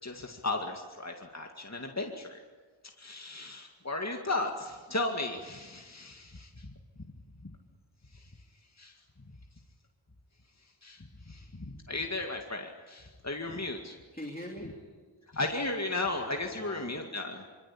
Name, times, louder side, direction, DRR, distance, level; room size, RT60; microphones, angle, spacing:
voice 1, 0.0-2.4 3.0-6.7 7.4-7.6 8.1-8.3 8.8-9.0 10.8-14.0 15.3-17.5, left 2 dB, 35° left, 3 dB, 2.2 m, -35 dB
voice 2, 14.1-15.4 16.5-17.1, left 1 dB, 20° left, 0 dB, 3.0 m, -44 dB
25.5 x 25.0 x 8.7 m, 1.4 s
wide cardioid pair, 45°, 46 cm